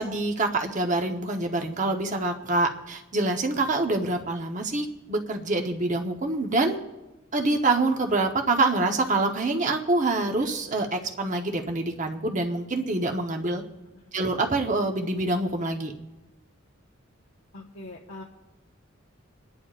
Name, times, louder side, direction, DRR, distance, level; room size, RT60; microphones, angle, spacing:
voice 1, 0.0-6.8 7.3-13.6 14.1-15.9, right 2 dB, 40° right, 3 dB, 1.0 m, -26 dB
voice 2, 17.5-18.2, left 2 dB, 85° left, -2 dB, 1.2 m, -42 dB
27.5 x 10.5 x 2.5 m, 1.0 s
head